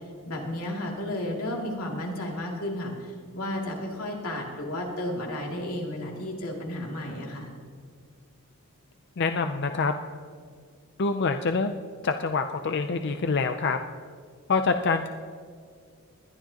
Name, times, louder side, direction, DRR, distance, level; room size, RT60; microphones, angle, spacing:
voice 1, 0.2-7.5, left 1 dB, 85° left, -1 dB, 2.6 m, -33 dB
voice 2, 9.2-9.9 11.0-13.8 14.5-15.1, left 4 dB, 50° left, 7 dB, 0.5 m, -26 dB
20.5 x 11.5 x 2.9 m, 2.1 s
head